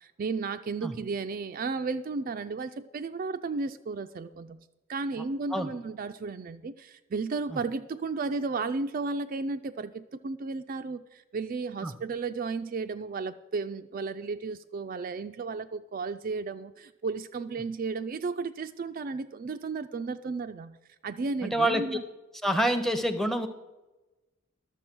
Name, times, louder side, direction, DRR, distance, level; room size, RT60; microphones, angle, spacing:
voice 1, 0.0-20.8 21.0-22.0, right 4 dB, 40° right, 9 dB, 0.3 m, -34 dB
voice 2, 21.4-21.8 22.4-23.5, right 1 dB, ahead, 10 dB, 0.7 m, -26 dB
11.5 x 7.1 x 6.0 m, 1.1 s
head